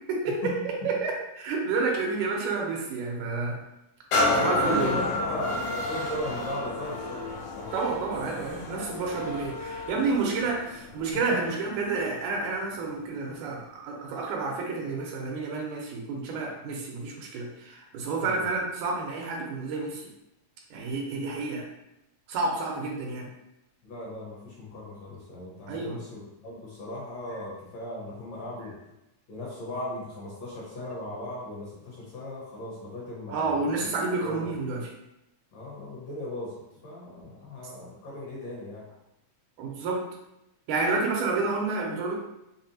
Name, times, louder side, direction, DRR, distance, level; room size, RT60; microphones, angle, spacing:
voice 1, 0.1-3.6 4.4-5.0 7.7-20.1 20.7-21.7 22.3-23.3 25.7-26.0 33.3-34.9 39.6-40.1 40.7-42.2, right 3 dB, 80° right, -1 dB, 2.2 m, -30 dB
sound 1, 4.1-11.7 12.3-12.4, left 1 dB, 85° left, 1.4 m, -30 dB
voice 2, 4.6-7.2 7.6-7.7 18.2-18.4 23.8-28.7 29.3-33.8 34.2-34.5 35.5-36.5 36.8-38.8, left 1 dB, 65° left, -6 dB, 2.1 m, -37 dB
5.5 x 2.2 x 2.7 m, 0.88 s
omnidirectional pair, 3.6 m